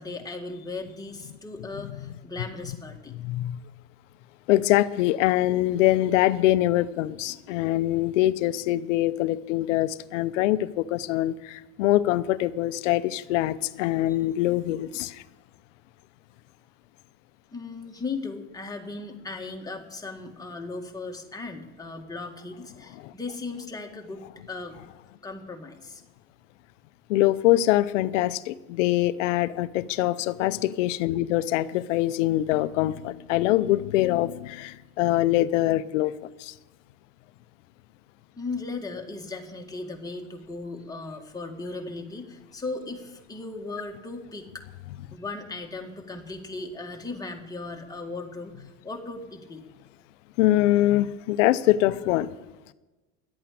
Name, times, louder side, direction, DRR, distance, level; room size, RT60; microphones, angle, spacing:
voice 1, 0.0-3.1 17.5-24.8 25.2-26.0 38.4-44.6 45.1-49.6, left 3 dB, 10° left, 1 dB, 1.9 m, -37 dB
voice 2, 3.2-3.6 4.5-15.2 23.0-23.1 27.1-36.1 36.4-36.5 50.4-52.3, left 15 dB, 80° left, 15 dB, 0.7 m, -24 dB
11.5 x 8.6 x 8.4 m, 1.1 s
supercardioid pair, 100°, 36 cm